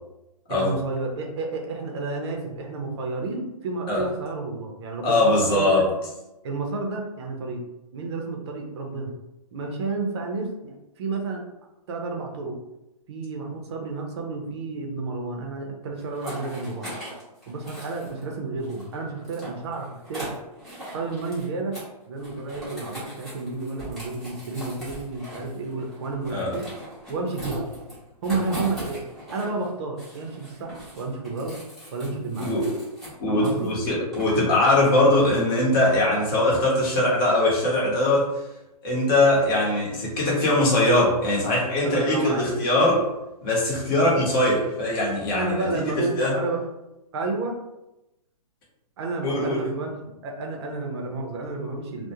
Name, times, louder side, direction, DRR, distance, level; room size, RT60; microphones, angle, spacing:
voice 1, 0.5-5.8 6.4-7.6 7.9-9.1 9.5-11.4 11.9-12.6 13.1-16.9 17.5-20.3 20.9-21.8 22.1-26.7 27.1-27.6 28.2-29.0 29.3-31.6 31.9-32.7 33.3-33.7 41.8-42.6 45.3-46.6 47.1-47.6 49.0-52.1, right 3 dB, 45° right, 1 dB, 0.5 m, -31 dB
voice 2, 5.0-5.9 26.3-26.5 32.4-32.6 33.2-38.3 38.8-43.0 43.4-46.3 49.2-49.6, left 1 dB, 30° left, -4 dB, 0.9 m, -21 dB
sound 1, 16.0-18.3 18.6-21.5 21.7-21.9 22.2-29.7 30.0-33.7 34.1-35.0, right 1 dB, ahead, 0.7 m, -40 dB
2.3 x 2.1 x 2.8 m, 0.95 s
hypercardioid pair, 150°, 20 cm